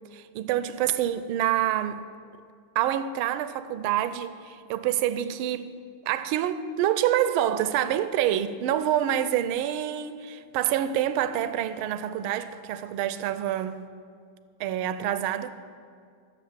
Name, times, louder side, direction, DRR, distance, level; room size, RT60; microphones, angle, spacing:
voice 1, 0.1-2.0 2.7-5.7 6.1-13.8 14.6-15.5, right 11 dB, 80° right, 1.4 m, -27 dB
11.5 x 7.8 x 7.4 m
omnidirectional pair, 2.4 m